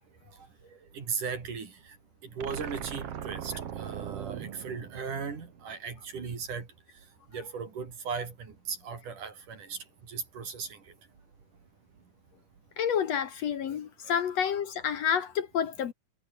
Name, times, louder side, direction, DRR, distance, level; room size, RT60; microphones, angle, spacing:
voice 1, 0.9-1.7 2.4-6.7 7.3-9.8 10.1-10.8, right 5 dB, 70° right, 5.8 m, -37 dB
sound 1, 2.4-5.7, right 9 dB, 55° right, 2.3 m, -39 dB
voice 2, 12.8-15.9, left 8 dB, 60° left, 2.3 m, -29 dB
omnidirectional pair, 3.7 m